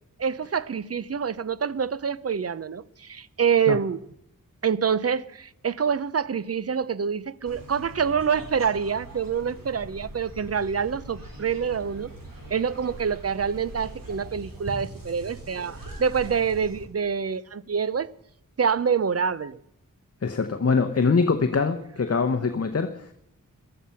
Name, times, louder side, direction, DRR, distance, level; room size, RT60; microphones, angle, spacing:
voice 1, 0.2-4.0 4.6-12.1 12.5-18.1 18.6-19.6, right 6 dB, 45° right, 0.6 m, -26 dB
sound 1, 7.5-16.8, right 2 dB, 75° right, 3.8 m, -42 dB
voice 2, 20.2-23.1, left 4 dB, 45° left, 0.9 m, -23 dB
15.0 x 12.5 x 5.7 m
wide cardioid pair, 85°, 34 cm